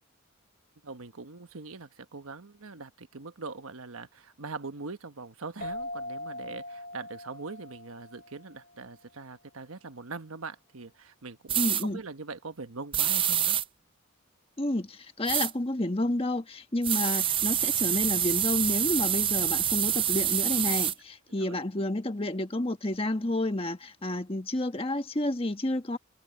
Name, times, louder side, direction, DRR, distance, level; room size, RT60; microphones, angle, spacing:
voice 1, 0.8-13.6 21.4-21.6, right 4 dB, 80° right, 1.2 m, -42 dB
sound 1, 5.6-8.9, left 1 dB, 45° left, 4.1 m, -41 dB
sound 2, 11.5-11.8 12.9-13.6 15.3-15.5 16.8-20.9, right 10 dB, 25° right, 0.5 m, -26 dB
voice 2, 11.6-12.0 14.6-26.0, left 1 dB, 25° left, 1.4 m, -30 dB
head